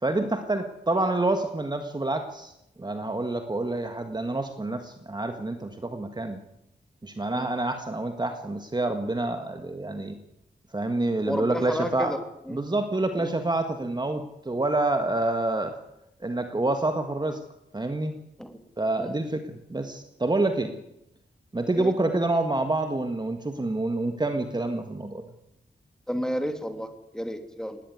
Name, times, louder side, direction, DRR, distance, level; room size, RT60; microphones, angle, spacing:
voice 1, 0.0-2.5 2.8-6.4 7.0-10.2 10.7-12.1 12.5-15.7 16.2-17.4 17.7-18.2 18.8-20.7 21.5-25.3, right 2 dB, 25° right, 7 dB, 1.8 m, -27 dB
voice 2, 11.2-12.6 13.2-13.4 18.4-18.6 19.0-19.2 20.6-20.7 21.7-21.9 26.1-27.8, equal, 5° left, 7 dB, 2.6 m, -32 dB
19.5 x 18.0 x 9.5 m, 0.83 s
wide cardioid pair, 135°, 19 cm